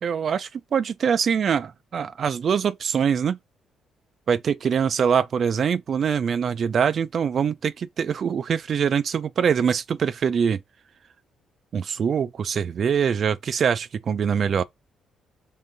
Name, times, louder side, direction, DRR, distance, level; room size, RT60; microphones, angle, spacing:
voice 1, 0.0-3.4 4.3-10.6 11.7-14.6, right 7 dB, 55° right, 0.3 m, -23 dB
3.7 x 3.5 x 2.6 m
cardioid pair, 90°, 0 cm